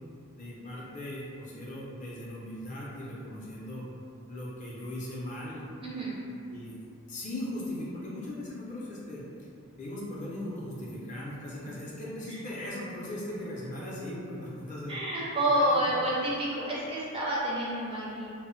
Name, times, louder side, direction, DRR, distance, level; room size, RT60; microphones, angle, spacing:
voice 1, 0.3-3.8 4.3-5.7 6.4-6.8 7.1-9.2 9.8-15.0 15.5-15.8, left 1 dB, 35° left, -6 dB, 0.4 m, -38 dB
voice 2, 5.8-6.2 14.9-18.3, right 1 dB, 25° right, -6 dB, 0.4 m, -29 dB
2.1 x 2.0 x 3.7 m, 2.4 s
head